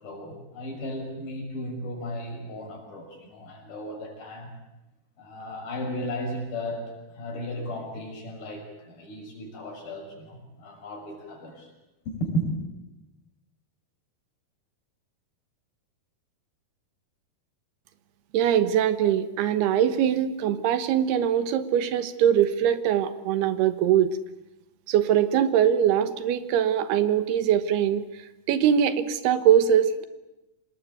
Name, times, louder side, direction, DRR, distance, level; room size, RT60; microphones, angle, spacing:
voice 1, 0.0-4.5 5.2-6.8 7.1-11.7 12.1-12.5, equal, 65° left, 1 dB, 7.9 m, -35 dB
voice 2, 18.3-24.2 24.9-28.1 28.5-30.1, right 9 dB, 75° right, 11 dB, 3.1 m, -22 dB
26.0 x 20.0 x 9.2 m, 0.97 s
omnidirectional pair, 4.7 m